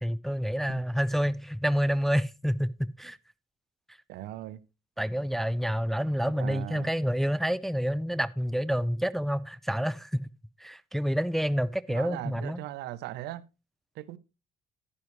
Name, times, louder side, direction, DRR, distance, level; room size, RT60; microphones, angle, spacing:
voice 1, 0.0-2.7 3.0-3.2 5.0-10.2 10.6-12.6, equal, ahead, 0.4 m, -28 dB
voice 2, 4.1-4.6 6.2-6.9 11.9-13.4 13.9-14.2, right 14 dB, 85° right, 0.7 m, -39 dB
11.0 x 9.7 x 3.0 m
cardioid pair, 110°, 17 cm